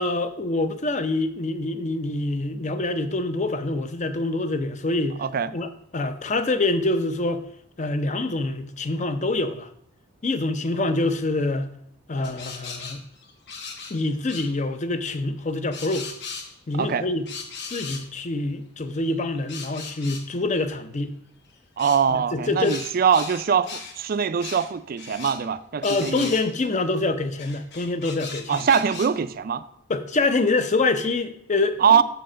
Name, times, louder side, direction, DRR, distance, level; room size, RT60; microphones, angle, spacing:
voice 1, 0.0-5.2 5.5-7.4 7.8-9.7 10.2-11.7 12.1-13.0 13.9-16.1 16.7-17.3 17.7-21.1 22.1-22.8 25.8-28.7 29.9-32.0, left 2 dB, 35° left, 0.5 m, -25 dB
voice 2, 5.2-5.5 16.8-17.0 21.8-26.3 28.5-29.6 31.8-32.0, right 7 dB, 45° right, 0.3 m, -22 dB
sound 1, 12.2-14.0 14.3-14.5 15.7-16.8 17.2-18.1 19.0-20.3 21.8-22.0 22.6-24.0 24.4-24.7 25.0-25.4 25.8-26.7 27.4-29.1, left 5 dB, 55° left, 0.9 m, -38 dB
6.5 x 4.6 x 6.1 m
head